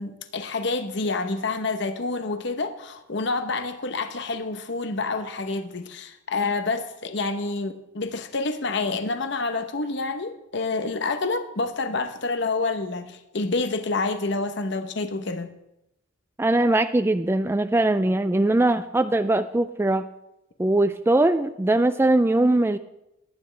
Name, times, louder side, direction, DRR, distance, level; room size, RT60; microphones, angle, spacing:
voice 1, 0.0-15.5, left 3 dB, 60° left, 8 dB, 0.9 m, -28 dB
voice 2, 16.4-20.1 20.6-22.8, right 2 dB, 10° right, 10 dB, 0.3 m, -21 dB
19.5 x 9.7 x 3.3 m, 0.87 s
head